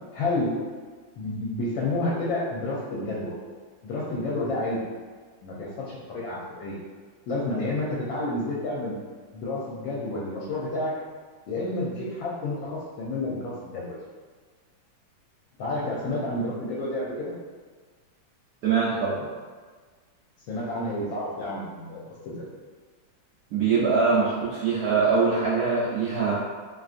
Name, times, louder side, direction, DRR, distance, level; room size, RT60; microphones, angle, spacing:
voice 1, 0.1-0.5 1.2-3.3 3.8-4.8 5.4-6.8 7.3-8.9 9.3-10.9 11.5-14.0 15.6-17.3 20.5-22.5, left 2 dB, 75° left, -6 dB, 1.3 m, -30 dB
voice 2, 18.6-19.2 23.5-26.3, right 5 dB, 90° right, -7 dB, 0.8 m, -23 dB
3.2 x 2.5 x 2.4 m, 1.5 s
omnidirectional pair, 2.2 m